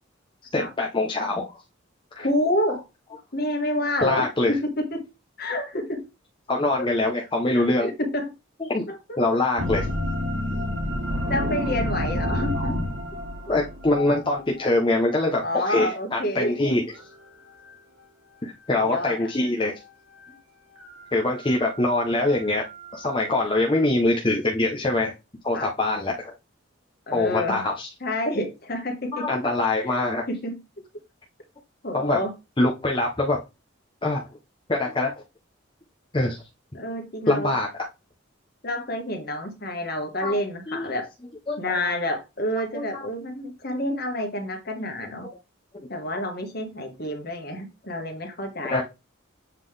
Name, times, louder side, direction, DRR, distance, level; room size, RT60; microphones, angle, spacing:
voice 1, 0.5-1.6 2.1-2.3 4.0-4.5 6.5-7.9 8.6-8.8 9.2-9.9 13.5-16.8 18.4-19.7 21.1-22.6 22.9-25.1 25.4-26.3 27.1-27.9 29.1-30.2 31.9-32.2 32.6-33.4 34.0-34.3 34.7-35.1 36.1-36.4 37.3-37.7 40.2-40.4 40.7-40.9 41.5-42.0 42.7-43.1 48.7-48.8, left 2 dB, 25° left, -1 dB, 0.8 m, -24 dB
voice 2, 2.2-2.8 3.3-5.0 5.4-6.1 7.8-8.3 8.9-9.0 11.3-12.8 15.4-16.8 18.9-19.3 25.5-25.7 27.1-27.6 28.0-29.3 30.3-30.6 31.8-32.3 36.7-37.5 38.6-41.1 41.6-45.3 45.9-48.8, left 1 dB, 50° left, 4 dB, 1.5 m, -28 dB
sound 1, 9.6-15.0 16.2-17.2 17.6-17.7 20.2-20.3 20.8-23.8, left 1 dB, 80° right, 2.4 m, -30 dB
7.4 x 3.7 x 3.3 m, 0.25 s
head